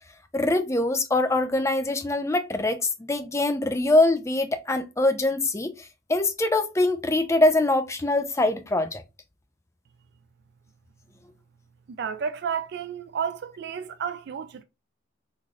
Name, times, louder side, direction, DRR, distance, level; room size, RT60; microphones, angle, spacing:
voice 1, 0.3-5.7 6.1-9.0, left 2 dB, 15° left, 0.5 m, -23 dB
voice 2, 11.9-14.6, right 7 dB, 60° right, 0.4 m, -31 dB
3.8 x 3.1 x 2.4 m
head